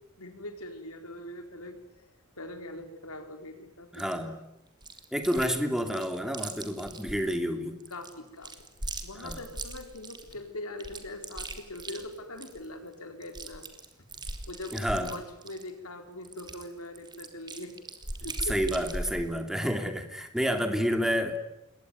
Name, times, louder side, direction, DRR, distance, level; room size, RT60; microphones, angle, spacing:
voice 1, 0.2-4.3 7.9-8.5 9.0-13.7 14.1-19.1, left 1 dB, 80° left, 6 dB, 4.5 m, -42 dB
voice 2, 3.9-4.4 5.1-7.8 9.2-9.4 14.7-15.1 18.5-21.4, equal, ahead, 6 dB, 3.0 m, -29 dB
Chewing mastication, 3.9-4.1 4.8-5.5 5.8-7.3 7.8-10.3 10.8-12.6 12.9-13.0 13.2-15.7 16.2-19.3, right 2 dB, 20° right, 3.2 m, -39 dB
28.5 x 22.0 x 9.5 m, 0.87 s
head